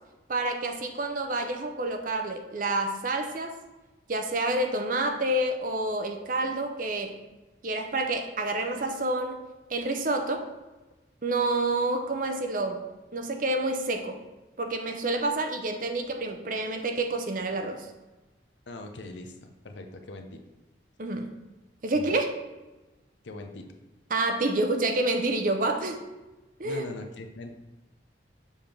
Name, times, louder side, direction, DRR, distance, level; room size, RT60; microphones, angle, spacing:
voice 1, 0.3-3.5 4.1-7.2 7.6-9.4 9.7-10.5 11.2-12.8 13.1-14.2 14.6-17.9 21.0-21.3 21.8-22.3 24.1-26.0 26.6-26.8, right 2 dB, 45° right, 5 dB, 0.6 m, -28 dB
voice 2, 18.7-20.4 22.0-22.2 23.2-23.7 26.6-27.5, left 2 dB, 70° left, 5 dB, 0.7 m, -41 dB
7.1 x 3.5 x 5.9 m, 1.1 s
head